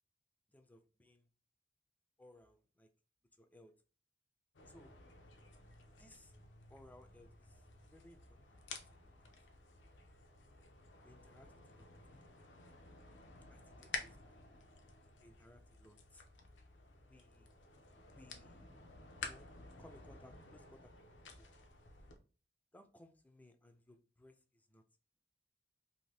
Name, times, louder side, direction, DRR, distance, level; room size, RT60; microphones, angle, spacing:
voice 1, 0.5-1.2 2.2-2.9 3.4-3.7 4.7-4.9 6.0-6.3 6.7-7.5 7.9-8.6 9.2-9.4 11.0-11.9 13.5-14.2 15.2-16.2 17.1-17.5 18.1-18.6 19.1-19.5 19.8-20.9 21.3-21.5 22.7-24.4 24.7-24.8, left 1 dB, 10° left, 0.4 m, -62 dB
sound 1, 4.5-22.2, left 4 dB, 90° left, 0.6 m, -52 dB
2.7 x 2.6 x 3.2 m
head